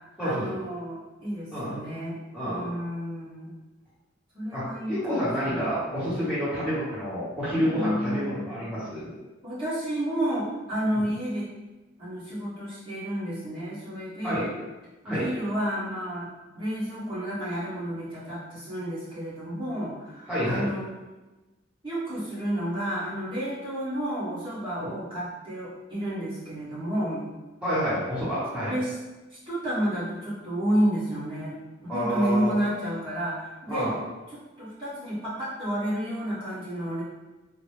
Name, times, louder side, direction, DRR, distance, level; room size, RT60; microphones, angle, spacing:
voice 1, 0.2-2.2 2.4-3.5 4.3-5.7 7.7-8.9 9.4-11.5 12.0-14.5 15.0-16.3 16.5-20.9 21.8-27.2 28.6-29.0 29.3-31.5 31.8-33.9 34.3-37.0, equal, 25° right, -12 dB, 1.4 m, -31 dB
voice 2, 2.3-2.7 4.5-9.1 10.9-11.1 14.2-14.5 15.0-15.3 20.3-20.7 24.8-24.9 27.6-28.7 31.9-32.5 33.7-34.0, equal, 5° right, -14 dB, 1.2 m, -28 dB
3.9 x 2.2 x 3.2 m, 1.1 s
head